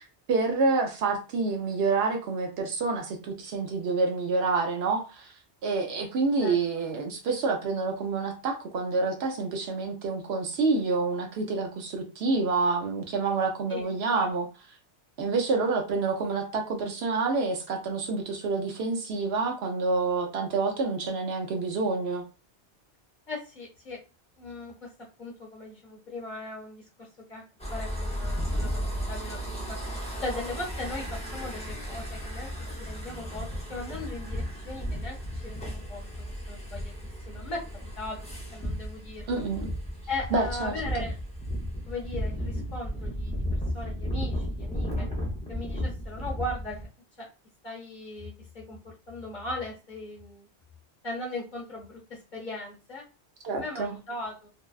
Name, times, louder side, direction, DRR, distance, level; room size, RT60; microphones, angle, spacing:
voice 1, 0.0-5.3 5.6-14.5 15.2-22.2 39.3-39.7 40.3-40.7 53.4-53.9, right 4 dB, 70° right, 3 dB, 0.8 m, -28 dB
voice 2, 13.7-14.3 23.3-24.0 24.4-24.9 25.2-27.4 27.7-29.4 29.7-29.8 30.2-35.2 35.4-36.9 37.3-37.6 38.0-39.4 40.1-41.2 41.9-43.4 43.7-45.1 45.5-46.9 47.2-47.3 47.6-50.5 51.0-53.0 53.5-54.5, left 2 dB, 45° left, -2 dB, 0.9 m, -38 dB
sound 1, 27.6-46.9, equal, 10° left, 0.3 m, -34 dB
2.6 x 2.1 x 2.3 m, 0.32 s
omnidirectional pair, 1.2 m